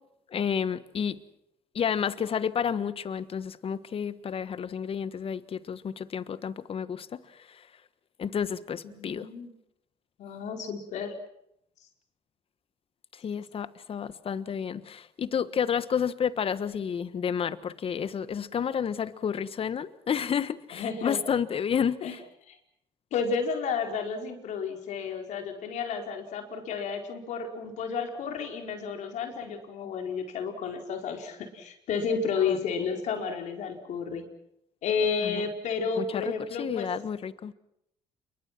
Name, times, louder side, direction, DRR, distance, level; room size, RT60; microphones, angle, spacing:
voice 1, 0.3-1.2 1.7-7.2 8.2-9.3 13.2-22.2 32.5-32.6 35.2-35.4 36.0-37.5, left 7 dB, 45° left, 14 dB, 1.4 m, -30 dB
voice 2, 8.8-9.5 10.2-11.1 20.7-21.2 22.0-22.1 22.5-22.6 23.1-34.3 34.8-36.9, left 5 dB, 70° left, 4 dB, 4.6 m, -31 dB
28.0 x 23.5 x 6.1 m, 0.77 s
supercardioid pair, 70°, 13 cm